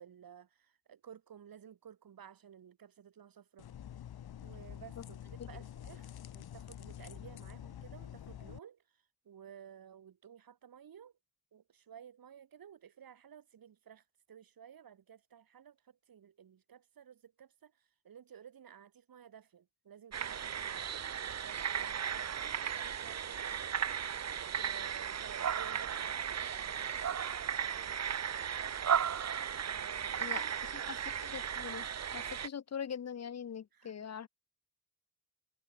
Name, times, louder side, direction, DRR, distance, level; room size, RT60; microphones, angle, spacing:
voice 1, 0.0-3.7 4.4-11.1 11.5-21.0 21.4-23.6 24.5-27.3 27.6-28.5 29.6-31.0 33.7-34.1, right 8 dB, 65° right, 6.3 m, -55 dB
sound 1, 3.6-8.6, left 10 dB, 75° left, 4.8 m, -47 dB
sound 2, 20.1-32.5, right 8 dB, 45° right, 1.0 m, -36 dB
voice 2, 31.2-31.9 32.1-34.3, left 7 dB, 45° left, 0.9 m, -42 dB
cardioid pair, 80°, 38 cm